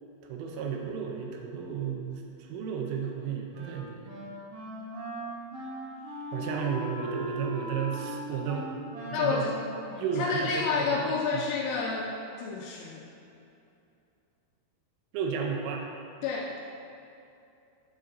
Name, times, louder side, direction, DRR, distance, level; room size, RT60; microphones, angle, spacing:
voice 1, 0.2-4.0 6.3-8.7 9.1-9.5 10.0-11.5 15.1-15.9, right 7 dB, 80° right, 1 dB, 3.1 m, -33 dB
Wind instrument woodwind instrument, 3.5-11.0, equal, 55° right, 2.4 m, -39 dB
voice 2, 9.1-9.6 10.2-12.1 12.4-13.1 16.2-16.6, left 5 dB, 85° left, -1 dB, 2.8 m, -29 dB
9.0 x 7.7 x 2.6 m, 2.6 s
omnidirectional pair, 5.8 m